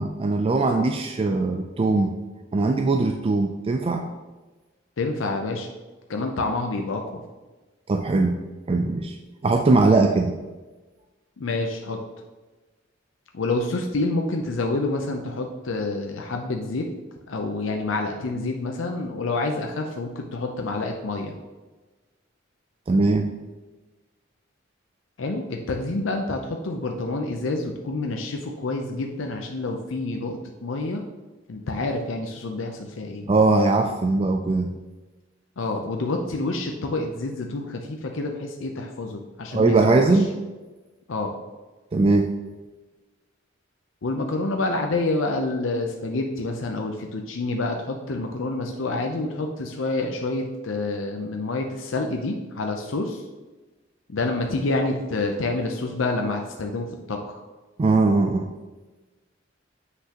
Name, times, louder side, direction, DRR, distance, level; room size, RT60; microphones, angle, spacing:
voice 1, 0.0-2.1 2.5-4.1 7.9-8.4 8.7-9.2 9.4-10.3 22.9-23.3 33.3-34.7 39.5-40.3 41.9-42.3 57.8-58.5, right 3 dB, 30° right, 5 dB, 0.3 m, -20 dB
voice 2, 5.0-5.7 6.1-7.2 11.4-12.0 13.3-16.9 17.3-21.3 25.2-31.0 31.5-33.3 35.6-40.0 41.1-41.4 44.0-53.2 54.1-57.4, left 2 dB, 80° left, 3 dB, 0.6 m, -28 dB
7.9 x 5.7 x 2.9 m, 1.2 s
head